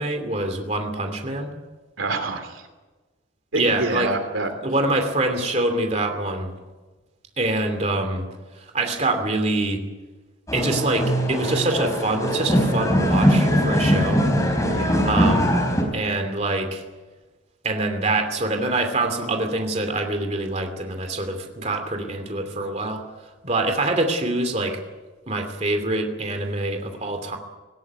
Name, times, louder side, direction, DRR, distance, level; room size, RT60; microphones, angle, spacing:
voice 1, 0.0-1.5 3.5-4.1 4.6-6.5 7.4-8.3 8.5-9.8 10.5-14.2 15.0-15.6 15.9-16.8 17.6-24.8 25.3-27.4, right 2 dB, 35° right, 5 dB, 2.8 m, -25 dB
voice 2, 2.0-2.7 3.5-4.5 14.7-15.1, right 3 dB, 90° right, 7 dB, 3.0 m, -27 dB
sound 1, 10.5-15.8, equal, 15° left, 4.3 m, -21 dB
19.0 x 17.5 x 9.5 m, 1.3 s
head